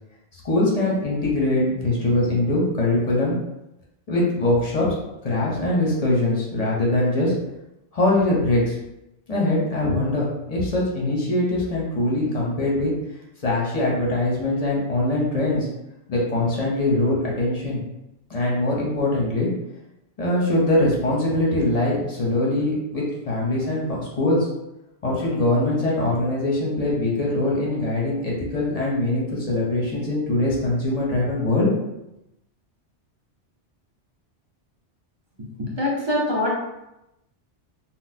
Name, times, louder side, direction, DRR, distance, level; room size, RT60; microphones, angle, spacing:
voice 1, 0.3-3.3 4.1-4.9 5.2-7.3 7.9-8.7 9.3-12.9 13.4-15.7 16.1-17.8 18.3-19.5 20.2-24.5 25.0-31.7, left 2 dB, 35° left, -4 dB, 0.7 m, -22 dB
voice 2, 35.6-36.5, left 1 dB, 30° right, -4 dB, 0.6 m, -23 dB
4.0 x 2.0 x 2.7 m, 0.89 s
omnidirectional pair, 1.2 m